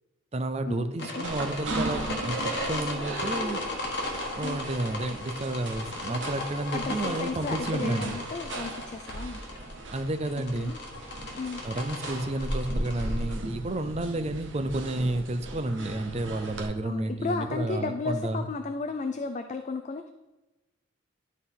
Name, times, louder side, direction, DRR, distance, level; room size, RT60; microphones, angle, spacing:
voice 1, 0.3-3.6 4.3-8.2 9.9-10.7 11.6-18.5, right 2 dB, 35° right, 8 dB, 0.5 m, -31 dB
sound 1, 1.0-13.3, left 2 dB, 60° left, 1.4 m, -36 dB
sound 2, 1.2-16.6, right 2 dB, 80° right, 1.1 m, -37 dB
voice 2, 6.7-9.4 10.6-10.8 11.4-11.6 16.8-20.1, left 4 dB, 40° left, 7 dB, 0.3 m, -34 dB
11.0 x 4.2 x 3.6 m, 1.1 s
head